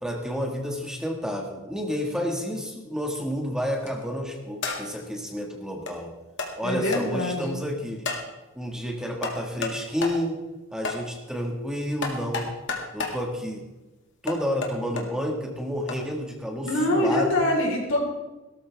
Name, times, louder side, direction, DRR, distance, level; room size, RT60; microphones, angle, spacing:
voice 1, 0.0-6.1 6.5-8.1 8.5-10.4 10.7-12.5 12.9-13.6 14.2-17.4, equal, 5° right, 1 dB, 1.7 m, -30 dB
sound 1, 3.7-4.0 4.6-5.0 5.9-6.0 6.4-6.5 6.9-7.0 8.0-8.3 9.2-9.8 10.0-10.2 10.8-11.0 12.0-13.2 14.3-15.0 15.9-16.0 16.7-16.8, left 3 dB, 60° left, 2.1 m, -31 dB
voice 2, 6.6-7.6 16.6-18.0, left 1 dB, 90° left, -1 dB, 4.0 m, -24 dB
17.5 x 13.0 x 3.5 m, 1.1 s
head